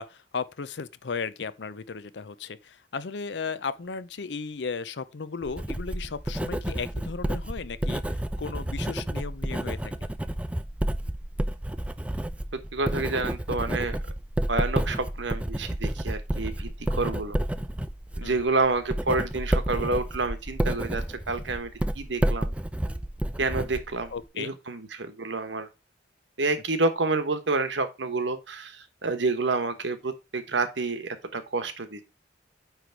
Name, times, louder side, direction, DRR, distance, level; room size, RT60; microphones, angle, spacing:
voice 1, 0.0-9.9 18.2-18.5 24.1-24.6, left 5 dB, 70° left, 0.6 m, -35 dB
Writing, 5.4-24.3, right 1 dB, 5° right, 0.3 m, -30 dB
voice 2, 12.7-14.0 14.5-17.4 18.2-21.7 21.9-22.5 23.4-25.7 26.4-32.0, right 3 dB, 80° right, 1.1 m, -29 dB
9.1 x 3.3 x 4.6 m
head